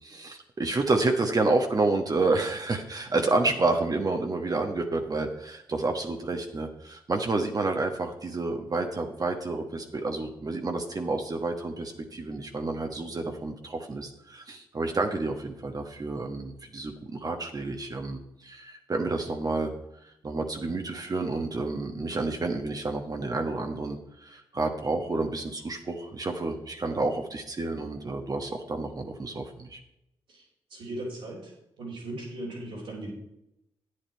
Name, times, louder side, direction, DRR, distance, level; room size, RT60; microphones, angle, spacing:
voice 1, 0.0-19.7 20.2-29.8, right 3 dB, 40° right, 4 dB, 1.3 m, -29 dB
voice 2, 30.7-31.5 31.8-33.1, right 1 dB, 75° right, -6 dB, 3.4 m, -37 dB
9.8 x 8.8 x 4.5 m, 0.84 s
hypercardioid pair, 45°, 10 cm